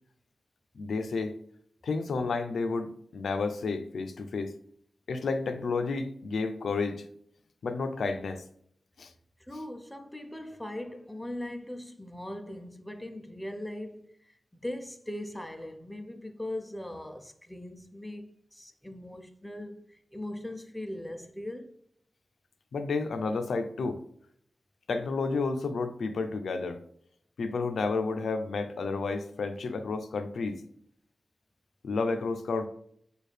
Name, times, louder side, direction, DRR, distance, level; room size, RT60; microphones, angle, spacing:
voice 1, 0.7-1.3 1.8-4.6 5.1-7.0 7.6-8.4 9.0-9.1 22.7-24.0 24.9-26.8 27.4-30.6 31.8-32.7, left 4 dB, 85° left, 0.5 m, -31 dB
voice 2, 9.5-21.8, left 1 dB, 5° left, 0.4 m, -40 dB
6.4 x 2.4 x 3.3 m
wide cardioid pair, 170°, 0 cm